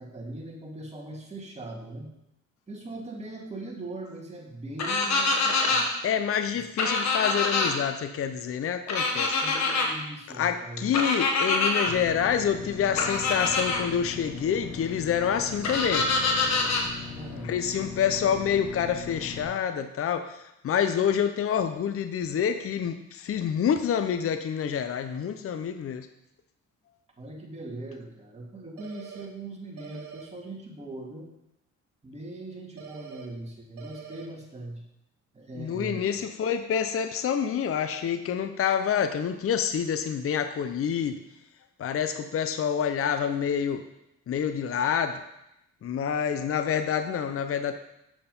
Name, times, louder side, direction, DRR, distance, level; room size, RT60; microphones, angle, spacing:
voice 1, 0.0-2.1 2.7-5.9 9.4-11.1 17.1-17.5 27.2-31.3 32.0-34.8 35.3-36.2, right 2 dB, 20° right, -1 dB, 2.4 m, -40 dB
sound 1, 4.8-5.8 6.8-7.7 8.9-9.9 10.9-11.9 13.0-13.8 15.6-16.8, left 3 dB, 65° left, 1.7 m, -25 dB
voice 2, 6.0-9.4 10.3-16.1 17.4-20.2 20.6-26.1 35.5-41.2 41.8-43.8 44.3-45.2 45.8-47.7, left 8 dB, 50° left, 9 dB, 0.7 m, -27 dB
sound 2, 11.8-19.4, left 5 dB, 85° left, 4.0 m, -40 dB
sound 3, 28.8-29.3 29.8-30.3 32.8-33.3 33.8-34.3, right 7 dB, 80° right, 1.6 m, -43 dB
7.6 x 6.8 x 5.4 m, 0.84 s
cardioid pair, 90°, 30 cm